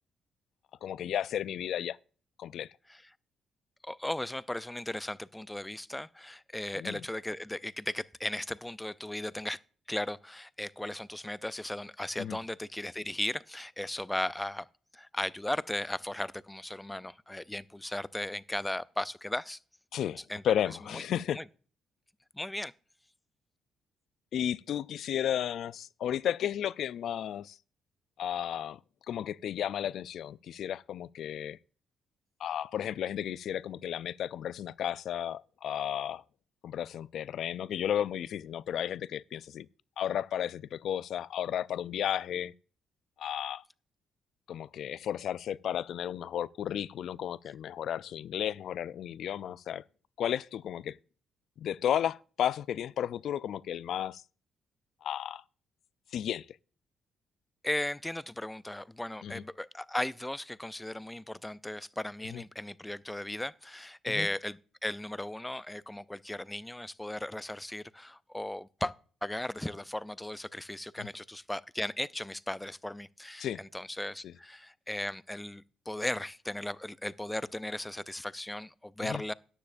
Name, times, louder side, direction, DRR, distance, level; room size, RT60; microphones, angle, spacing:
voice 1, 0.8-2.0 2.4-2.7 6.7-7.0 12.2-12.4 19.9-21.4 24.3-27.6 28.2-28.8 29.1-31.6 32.4-36.2 36.6-39.7 40.0-42.5 43.2-43.6 44.5-49.8 50.2-51.0 51.6-54.2 55.0-55.4 56.1-56.5 59.2-59.4 62.3-62.4 64.1-64.3 71.0-71.1 73.4-73.6 74.2-74.3 79.0-79.2, left 10 dB, 70° left, 0.4 m, -33 dB
voice 2, 3.8-9.6 9.9-14.7 14.9-19.6 20.3-21.0 21.3-21.4 22.3-22.7 57.6-68.9 69.2-79.3, left 1 dB, 10° left, 0.4 m, -36 dB
13.5 x 9.6 x 2.6 m
cardioid pair, 90°, 0 cm